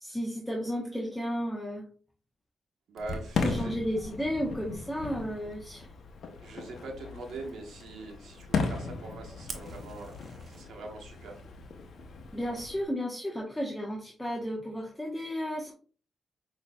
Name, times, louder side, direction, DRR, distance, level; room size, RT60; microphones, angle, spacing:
voice 1, 0.0-1.8 3.4-5.9 12.3-15.7, equal, 10° left, -2 dB, 0.9 m, -33 dB
voice 2, 2.9-3.7 6.4-10.2 10.5-11.4, right 3 dB, 80° right, 1 dB, 1.1 m, -42 dB
Fireworks, 3.0-12.8, left 4 dB, 70° left, 0.7 m, -37 dB
Fire, 9.5-10.6, right 4 dB, 55° right, 0.8 m, -44 dB
5.9 x 2.9 x 2.2 m, 0.40 s
supercardioid pair, 50°, 0 cm